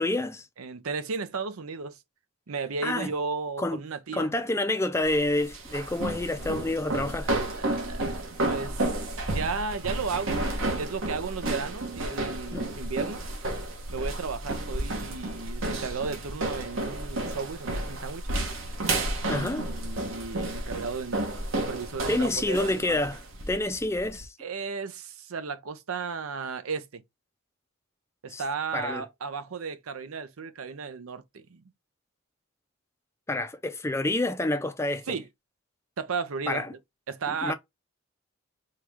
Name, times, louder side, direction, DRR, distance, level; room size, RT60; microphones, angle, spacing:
voice 1, 0.0-0.5 2.8-3.1 3.6-3.8 4.1-7.3 12.5-12.7 19.3-19.7 22.1-23.2 23.5-24.3 28.3-28.4 28.7-29.0 33.3-35.0 36.5-36.7 37.4-37.5, left 2 dB, 15° left, 0.4 m, -28 dB
voice 2, 0.6-2.0 2.5-4.3 7.6-13.2 13.9-18.4 19.2-23.0 24.4-27.0 28.2-31.6 35.1-35.2 36.0-36.8 37.1-37.5, right 5 dB, 85° right, 0.6 m, -34 dB
sound 1, 5.0-24.3, right 2 dB, 65° right, 1.2 m, -32 dB
4.6 x 2.3 x 3.4 m
head